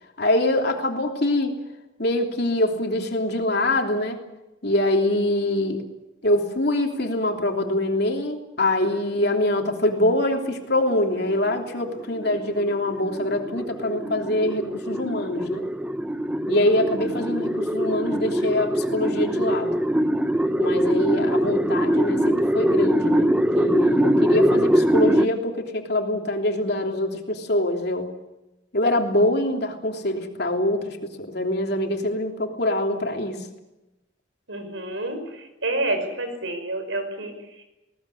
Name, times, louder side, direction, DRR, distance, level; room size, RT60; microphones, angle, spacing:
voice 1, 0.2-1.6 2.0-4.2 4.6-5.8 6.2-15.6 16.5-19.7 20.6-28.1 28.7-33.5, left 1 dB, 60° left, 3 dB, 3.2 m, -24 dB
sound 1, 10.9-25.3, equal, 5° right, 0.8 m, -23 dB
voice 2, 34.5-37.6, right 2 dB, 90° right, 7 dB, 5.3 m, -29 dB
20.0 x 19.0 x 9.9 m, 1.0 s
head